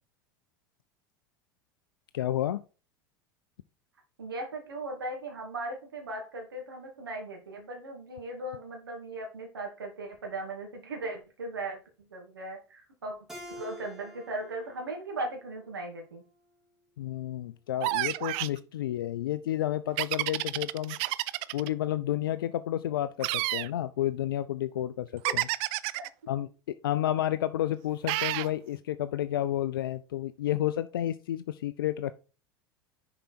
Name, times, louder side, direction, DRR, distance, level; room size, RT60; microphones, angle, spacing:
voice 1, 2.1-2.6 17.0-21.0 21.5-25.5 26.3-26.5 26.8-32.1, left 12 dB, 75° left, 13 dB, 0.4 m, -31 dB
voice 2, 4.2-13.2 13.6-16.2 26.0-26.1, right 2 dB, 85° right, 2 dB, 2.5 m, -38 dB
Keyboard (musical), 13.3-16.5, equal, 5° right, 2.4 m, -49 dB
sound 1, 17.8-18.6 20.0-21.7 23.2-23.7 25.2-26.1 28.1-28.5, right 20 dB, 55° right, 0.4 m, -30 dB
6.7 x 4.8 x 4.3 m, 0.34 s
hypercardioid pair, 85°, 12 cm